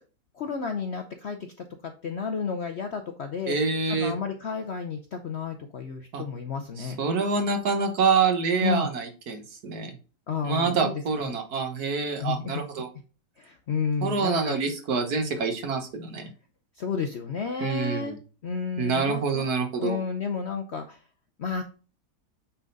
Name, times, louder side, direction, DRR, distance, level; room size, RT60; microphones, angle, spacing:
voice 1, 0.3-1.4 1.8-3.6 3.9-7.0 8.6-8.9 10.3-11.4 12.2-12.6 13.4-14.6 16.8-18.2 18.4-19.5 19.8-21.0 21.4-21.6, left 5 dB, 60° left, 6 dB, 0.7 m, -31 dB
voice 2, 3.5-4.1 6.1-6.2 6.8-9.9 10.4-12.9 14.0-16.3 17.6-18.2 18.8-20.0, right 5 dB, 65° right, 6 dB, 1.6 m, -26 dB
8.4 x 3.8 x 3.9 m, 0.35 s
omnidirectional pair, 1.8 m